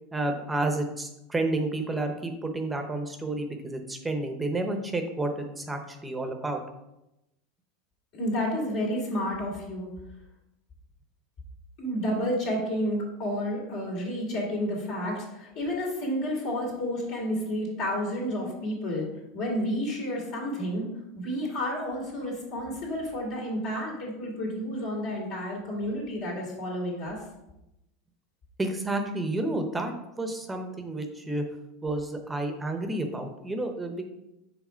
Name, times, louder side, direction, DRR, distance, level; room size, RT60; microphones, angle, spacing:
voice 1, 0.1-6.6 28.6-31.5 31.8-34.1, right 2 dB, 10° right, 5 dB, 0.8 m, -30 dB
voice 2, 8.1-9.9 11.8-19.1 19.3-27.2, equal, 60° left, -3 dB, 2.3 m, -30 dB
4.8 x 3.6 x 5.6 m, 0.90 s
hypercardioid pair, 105°, 0 cm